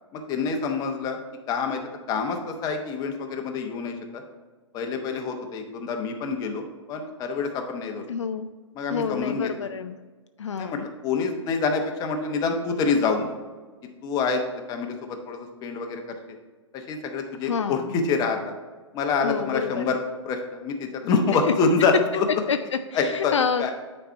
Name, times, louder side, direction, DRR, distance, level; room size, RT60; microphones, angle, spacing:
voice 1, 0.1-1.2 1.5-1.8 2.1-4.2 4.7-6.6 6.9-8.0 8.7-9.5 10.5-13.3 14.0-14.4 14.7-16.0 16.7-18.4 18.9-20.0 20.2-22.2 22.9-23.7, left 4 dB, 25° left, 4 dB, 0.9 m, -26 dB
voice 2, 8.1-8.5 8.9-10.0 10.4-10.9 17.4-18.0 19.2-20.0 22.5-23.7, left 6 dB, 70° left, 9 dB, 0.4 m, -28 dB
9.1 x 4.3 x 4.4 m, 1.3 s
figure-of-eight pair, 115°, 16 cm